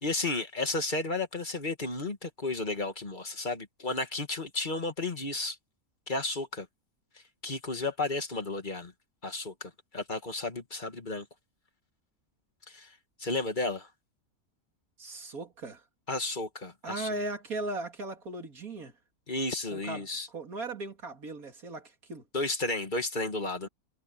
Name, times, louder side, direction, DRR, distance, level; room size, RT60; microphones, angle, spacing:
voice 1, 0.0-5.6 6.1-6.7 7.4-8.9 9.2-11.3 12.7-12.9 13.2-13.9 16.1-17.1 19.3-20.3 22.3-23.7, left 2 dB, 30° left, 2.1 m, -33 dB
voice 2, 15.0-15.8 16.8-18.9 19.7-22.2, right 2 dB, 75° right, 3.2 m, -38 dB
omnidirectional pair, 1.5 m